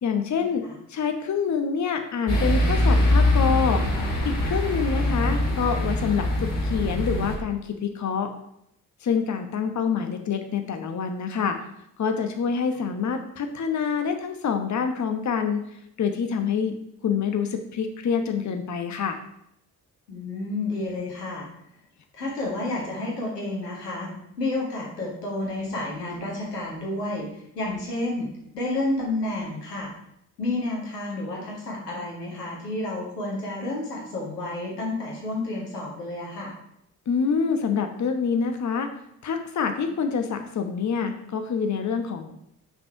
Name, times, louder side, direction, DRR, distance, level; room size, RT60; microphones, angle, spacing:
voice 1, 0.0-0.6 0.9-3.8 4.2-8.3 9.0-11.6 12.0-15.6 16.0-16.7 17.0-19.2 37.1-38.9 39.2-42.3, left 6 dB, 35° left, 6 dB, 1.0 m, -26 dB
sound 1, 2.3-7.3, left 1 dB, 65° left, 3.1 m, -23 dB
voice 2, 20.1-21.5 22.1-24.1 24.4-29.9 30.4-36.5, left 2 dB, 90° left, -3 dB, 1.8 m, -30 dB
6.0 x 5.4 x 5.6 m, 0.76 s
figure-of-eight pair, 40°, 46 cm